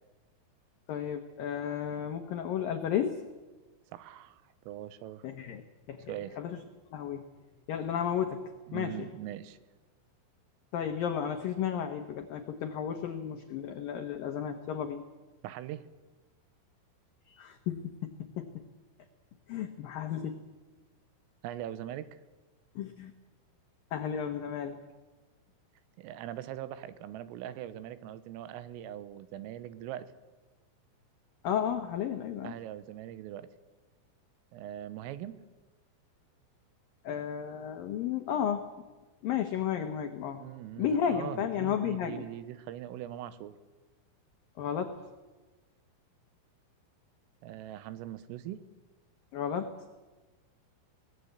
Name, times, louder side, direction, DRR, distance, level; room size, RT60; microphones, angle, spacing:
voice 1, 0.9-3.2 5.2-5.6 5.9-6.6 6.9-7.2 7.7-9.1 10.7-15.0 17.3-18.6 19.5-20.4 22.8-23.1 23.9-24.8 31.4-32.5 37.0-38.6 39.2-40.4 40.8-42.2 44.6-45.0 49.3-49.7, left 8 dB, 90° left, 6 dB, 2.0 m, -33 dB
voice 2, 3.9-5.3 6.1-6.4 8.7-9.6 15.4-15.8 21.4-22.1 26.0-30.1 32.4-33.5 34.5-35.4 40.4-43.6 47.4-48.6, right 12 dB, 85° right, 14 dB, 3.5 m, -41 dB
23.0 x 19.0 x 8.2 m, 1.2 s
omnidirectional pair, 5.9 m